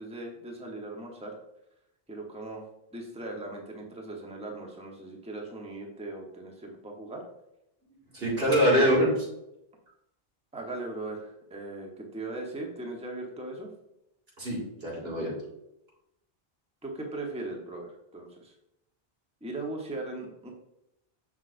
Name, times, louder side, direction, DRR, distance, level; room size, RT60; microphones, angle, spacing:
voice 1, 0.0-1.4 2.1-2.6 2.9-7.2 10.5-13.7 16.8-18.5 19.4-20.5, right 2 dB, 5° right, 0 dB, 0.9 m, -39 dB
voice 2, 8.1-9.2 14.4-15.3, equal, 80° right, -5 dB, 2.4 m, -24 dB
6.4 x 6.0 x 2.5 m, 0.85 s
omnidirectional pair, 1.0 m